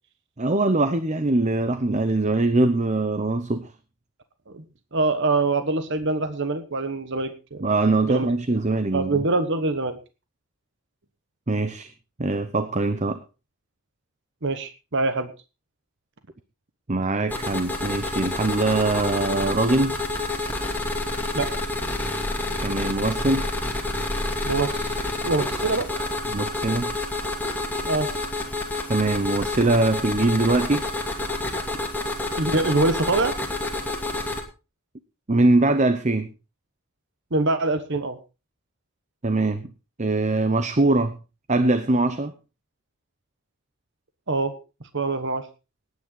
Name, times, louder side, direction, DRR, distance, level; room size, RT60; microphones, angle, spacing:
voice 1, 0.4-3.7 7.6-9.2 11.5-11.9 12.2-13.2 16.9-20.0 22.6-23.5 26.3-26.9 28.9-30.8 35.3-36.3 39.2-39.7 40.0-41.2 41.5-42.3, right 2 dB, 30° right, 11 dB, 0.8 m, -22 dB
voice 2, 4.9-7.6 8.1-8.3 8.9-10.0 14.4-15.3 21.3-21.5 24.4-26.2 27.9-28.1 32.4-33.3 37.3-38.2 44.3-44.5 44.9-45.5, right 3 dB, 55° right, 10 dB, 1.2 m, -24 dB
sound 1, 17.3-34.4, left 2 dB, 10° left, 2.6 m, -28 dB
19.0 x 9.6 x 3.9 m, 0.31 s
head